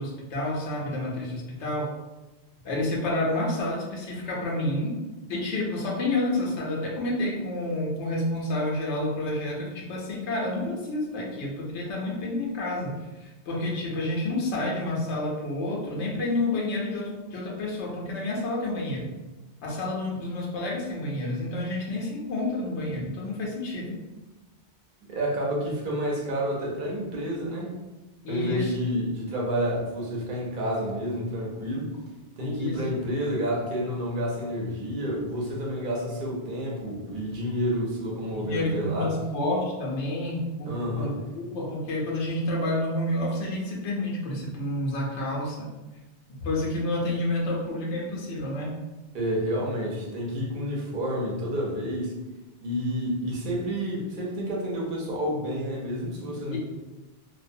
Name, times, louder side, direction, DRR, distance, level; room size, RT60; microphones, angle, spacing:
voice 1, 0.0-1.9 2.6-4.9 5.3-19.1 19.6-24.0 28.2-28.7 32.4-32.8 38.4-45.7 46.4-48.7 56.5-56.6, left 1 dB, 90° left, -2 dB, 0.9 m, -29 dB
voice 2, 25.1-27.7 28.3-31.9 32.4-39.1 40.7-41.2 49.1-52.1 52.6-56.6, equal, 55° right, -3 dB, 0.8 m, -29 dB
2.5 x 2.1 x 2.6 m, 1.1 s
omnidirectional pair, 1.1 m